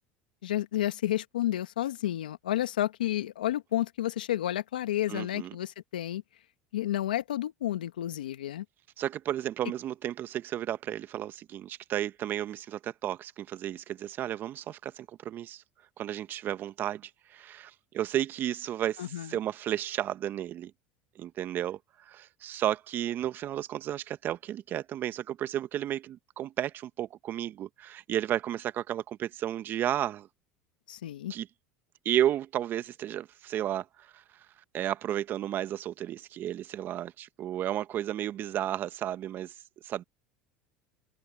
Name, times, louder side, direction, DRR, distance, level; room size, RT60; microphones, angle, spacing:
voice 1, 0.4-6.2 6.7-8.7 19.0-19.4 30.9-31.3, left 13 dB, 90° left, 1.7 m, -31 dB
voice 2, 5.1-5.5 9.0-15.6 16.0-20.7 21.1-21.8 22.0-30.3 31.3-31.5 32.0-34.2 34.7-39.5 39.8-40.0, right 12 dB, 50° right, 1.3 m, -33 dB
hypercardioid pair, 85°, 5 cm